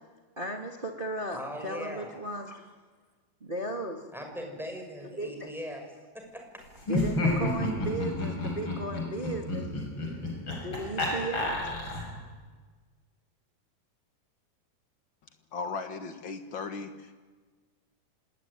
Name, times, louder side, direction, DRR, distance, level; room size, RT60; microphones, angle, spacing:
voice 1, 0.4-2.7 3.4-4.0 5.2-5.5 6.9-10.3 10.6-11.6, right 1 dB, 25° right, 2 dB, 1.1 m, -36 dB
voice 2, 1.3-2.1 4.1-5.8 6.1-6.4, equal, ahead, 2 dB, 5.9 m, -39 dB
Laughter, 6.8-12.2, left 1 dB, 30° left, 6.4 m, -31 dB
voice 3, 15.5-17.1, left 4 dB, 70° left, 7 dB, 1.1 m, -37 dB
26.5 x 19.5 x 10.0 m, 1.4 s
omnidirectional pair, 4.5 m